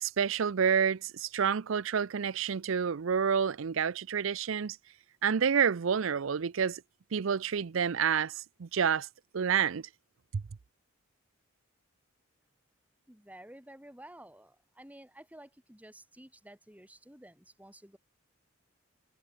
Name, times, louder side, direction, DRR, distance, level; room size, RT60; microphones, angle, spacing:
voice 1, 0.0-4.8 5.2-6.8 7.1-9.1 9.3-9.8, right 7 dB, 65° right, 0.5 m, -29 dB
voice 2, 13.1-18.0, right 1 dB, 5° right, 3.8 m, -52 dB
head